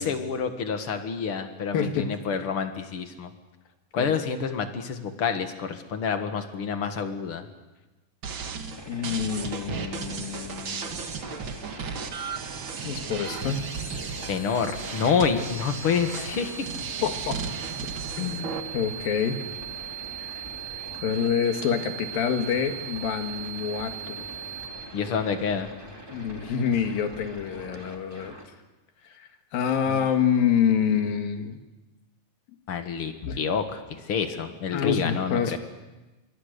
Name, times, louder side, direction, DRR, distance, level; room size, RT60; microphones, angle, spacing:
voice 1, 0.0-3.3 3.9-7.4 14.3-16.7 24.9-25.7 29.9-30.1 32.7-35.6, left 6 dB, 50° left, 7 dB, 2.0 m, -28 dB
voice 2, 1.7-2.1 4.0-4.1 8.9-11.1 12.8-13.7 17.0-17.4 18.2-19.4 20.2-20.4 21.0-24.3 26.1-28.3 29.0-31.6 33.2-33.4 34.7-35.6, left 7 dB, 75° left, 6 dB, 3.5 m, -27 dB
sound 1, 8.2-18.6, right 5 dB, 50° right, 1.6 m, -35 dB
sound 2, 8.7-28.4, equal, 10° right, 2.0 m, -44 dB
sound 3, 13.2-24.7, right 10 dB, 10° left, 5.2 m, -39 dB
26.5 x 23.5 x 6.7 m, 1.1 s
omnidirectional pair, 4.1 m